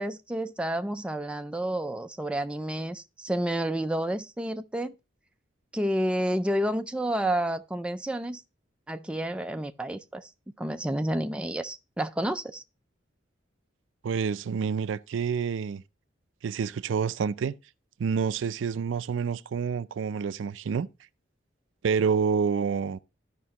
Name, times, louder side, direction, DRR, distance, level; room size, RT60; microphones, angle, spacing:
voice 1, 0.0-4.9 5.7-8.4 8.9-10.3 10.6-12.6, right 1 dB, 5° right, 0.3 m, -30 dB
voice 2, 14.0-15.8 16.4-17.5 18.0-20.9 21.8-23.0, right 6 dB, 75° right, 0.4 m, -28 dB
13.0 x 5.1 x 2.8 m
head